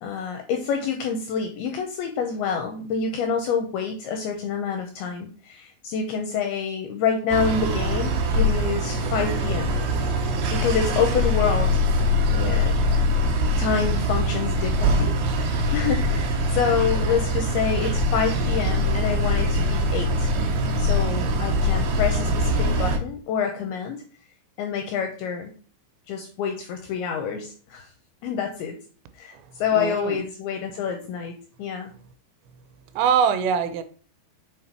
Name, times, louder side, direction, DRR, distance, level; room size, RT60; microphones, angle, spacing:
voice 1, 0.0-9.8 10.5-11.8 12.3-12.8 13.6-15.2 15.4-20.3 20.8-24.0 24.6-25.5 26.1-27.9 28.2-28.8 29.2-31.9, left 6 dB, 80° left, 2.3 m, -27 dB
sound 1, 7.3-23.0, left 1 dB, 70° right, 2.7 m, -23 dB
voice 2, 29.7-30.2 33.0-33.8, right 7 dB, 90° right, 2.9 m, -23 dB
7.3 x 3.9 x 4.6 m
omnidirectional pair, 5.1 m